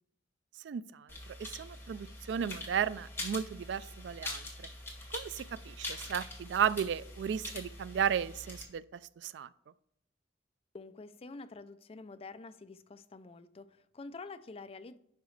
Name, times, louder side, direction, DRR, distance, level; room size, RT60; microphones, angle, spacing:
voice 1, 0.6-1.1 1.4-4.7 5.1-9.5, right 8 dB, 65° right, 17 dB, 0.3 m, -34 dB
sound 1, 1.1-8.6, left 2 dB, 15° left, 1.6 m, -44 dB
voice 2, 10.7-15.0, left 3 dB, 30° left, 12 dB, 0.4 m, -47 dB
10.5 x 5.8 x 3.2 m, 0.74 s
head